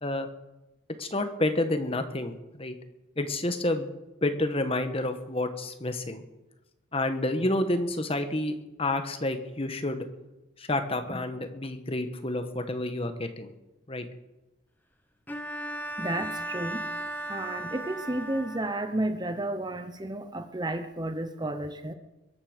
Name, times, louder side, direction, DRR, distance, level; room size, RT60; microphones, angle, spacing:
voice 1, 1.0-2.7 3.2-3.9 4.2-6.2 6.9-10.1 10.6-13.5 13.9-14.1, left 1 dB, 30° left, 8 dB, 1.3 m, -29 dB
Bowed string instrument, 15.3-19.0, right 1 dB, 10° left, 1.1 m, -36 dB
voice 2, 16.0-16.9 17.3-21.9, right 1 dB, 20° right, 9 dB, 0.8 m, -32 dB
22.5 x 9.7 x 6.6 m, 1.0 s
head